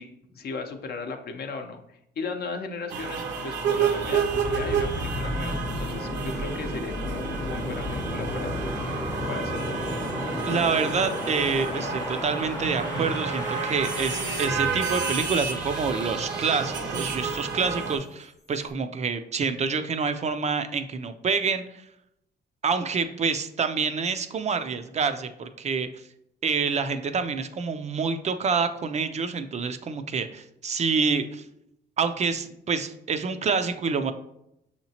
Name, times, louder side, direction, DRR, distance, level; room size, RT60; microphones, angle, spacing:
voice 1, 0.0-8.6 9.3-10.0, left 4 dB, 60° left, 5 dB, 0.6 m, -36 dB
sound 1, 2.9-18.0, right 5 dB, 85° right, 0.7 m, -30 dB
sound 2, 3.9-17.7, left 1 dB, 20° left, 0.7 m, -34 dB
voice 2, 10.5-21.8 22.6-25.9 26.4-31.4 32.0-34.1, right 5 dB, 40° right, 9 dB, 0.4 m, -27 dB
6.5 x 2.9 x 2.8 m, 0.79 s
cardioid pair, 100°, 18 cm